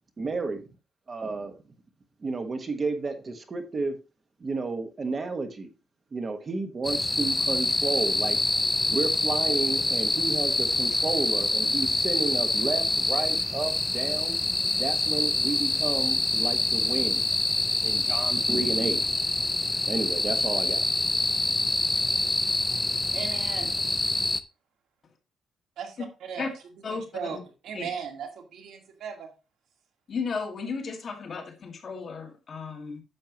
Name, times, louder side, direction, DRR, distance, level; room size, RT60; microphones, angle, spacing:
voice 1, 0.2-0.6 1.1-1.5 2.2-3.9 4.4-5.7 6.1-8.4 8.9-14.4 14.7-17.3 17.8-19.1 19.9-20.9, right 3 dB, 30° right, 7 dB, 1.4 m, -31 dB
sound 1, 6.8-24.4, left 2 dB, 10° left, 0.5 m, -26 dB
voice 2, 23.1-23.7 25.8-25.9 26.2-26.5 26.9-27.4 27.6-29.3, right 7 dB, 75° right, 3 dB, 2.0 m, -37 dB
voice 3, 26.8-27.4 27.7-27.9 30.1-33.0, left 5 dB, 40° left, 2 dB, 2.0 m, -34 dB
10.5 x 6.8 x 3.0 m, 0.30 s
cardioid pair, 150°, 0 cm